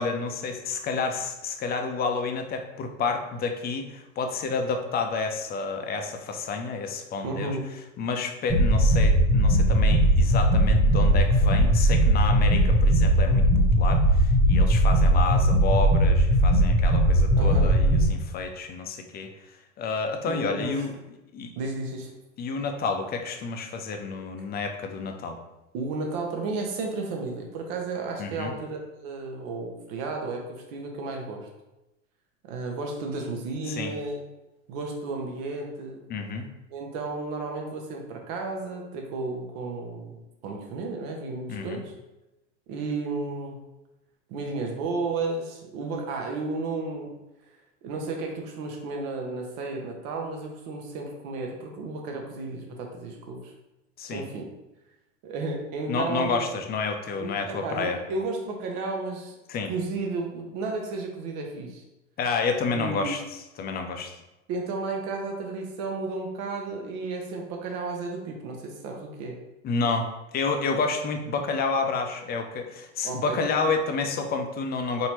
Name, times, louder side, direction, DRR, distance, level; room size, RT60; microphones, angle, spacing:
voice 1, 0.0-7.6 8.0-19.3 19.8-21.0 21.3-21.5 22.4-25.4 28.2-28.5 33.7-33.9 36.1-36.5 41.5-41.8 54.0-54.2 55.9-58.0 59.5-59.7 62.2-63.2 63.6-64.1 69.6-70.1 70.3-75.1, left 4 dB, 25° left, 4 dB, 0.5 m, -29 dB
voice 2, 7.2-7.7 17.4-17.7 20.2-20.9 21.6-22.1 25.7-31.5 32.5-34.2 34.7-36.0 36.7-40.2 40.4-41.8 42.7-43.6 44.3-47.2 47.8-53.5 54.1-54.5 55.2-56.4 57.1-59.3 59.7-61.8 62.7-63.1 64.5-69.4 73.0-73.4, right 3 dB, 55° right, 1 dB, 1.0 m, -33 dB
sound 1, 8.5-18.0, right 1 dB, 5° left, 1.0 m, -19 dB
4.2 x 2.7 x 2.9 m, 0.97 s
hypercardioid pair, 90°, 36 cm